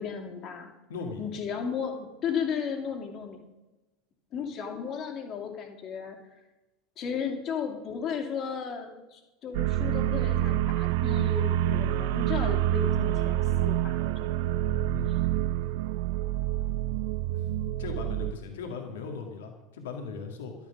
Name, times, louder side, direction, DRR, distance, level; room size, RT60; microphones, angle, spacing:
voice 1, 0.0-0.7 1.2-3.4 4.3-6.2 7.0-14.3 15.1-15.2, left 7 dB, 40° left, 2 dB, 2.5 m, -34 dB
voice 2, 0.9-1.2 14.9-15.5 17.3-17.5 17.8-20.5, left 5 dB, 65° left, 3 dB, 2.0 m, -38 dB
sound 1, 9.5-18.3, right 13 dB, 60° right, 0.4 m, -27 dB
12.5 x 10.5 x 6.1 m, 1.1 s
figure-of-eight pair, 75°, 0 cm